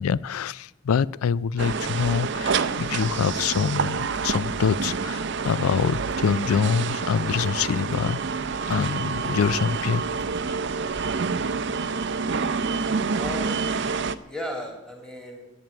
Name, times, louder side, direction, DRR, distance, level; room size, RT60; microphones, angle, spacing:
voice 1, 0.0-8.4 8.7-10.0 10.5-10.6, left 6 dB, 85° left, 21 dB, 0.4 m, -25 dB
sound 1, 1.6-14.1, right 5 dB, 55° right, 0.5 m, -28 dB
voice 2, 13.1-13.9 14.3-15.4, left 1 dB, 5° left, 1 dB, 2.3 m, -36 dB
11.0 x 9.1 x 9.0 m, 1.0 s
head